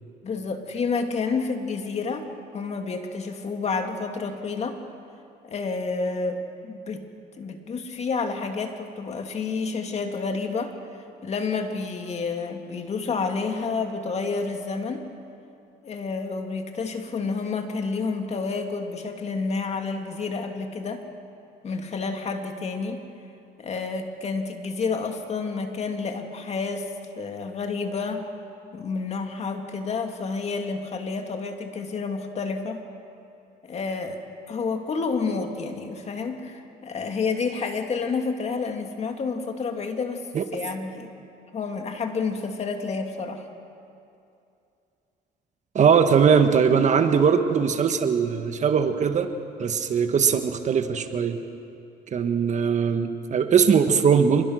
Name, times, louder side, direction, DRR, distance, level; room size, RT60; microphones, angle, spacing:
voice 1, 0.2-2.3 2.5-4.8 5.4-7.1 7.4-10.7 11.2-15.1 15.8-21.0 21.6-23.0 23.6-26.9 27.2-28.3 28.7-32.8 33.6-34.2 34.5-41.1 41.5-43.5, left 4 dB, 40° left, 5 dB, 2.3 m, -29 dB
voice 2, 45.7-49.3 49.6-51.4 52.1-54.4, right 6 dB, 45° right, 7 dB, 1.5 m, -20 dB
27.0 x 21.5 x 6.4 m, 2.6 s
cardioid pair, 110°, 17 cm